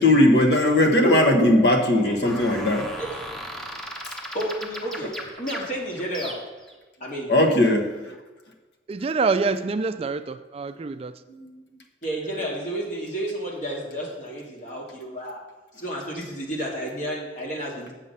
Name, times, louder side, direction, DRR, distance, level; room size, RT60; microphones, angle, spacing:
voice 1, 0.0-2.9 7.3-8.0 11.3-11.4, left 1 dB, 65° left, 3 dB, 1.2 m, -18 dB
sound 1, 2.2-6.7, equal, 5° left, 1.0 m, -36 dB
voice 2, 4.3-6.4 7.0-7.3 12.0-15.4 15.8-17.9, right 1 dB, 45° left, -2 dB, 2.1 m, -31 dB
voice 3, 8.9-11.2, right 4 dB, 35° right, 12 dB, 0.3 m, -26 dB
7.4 x 7.3 x 5.5 m, 1.2 s
head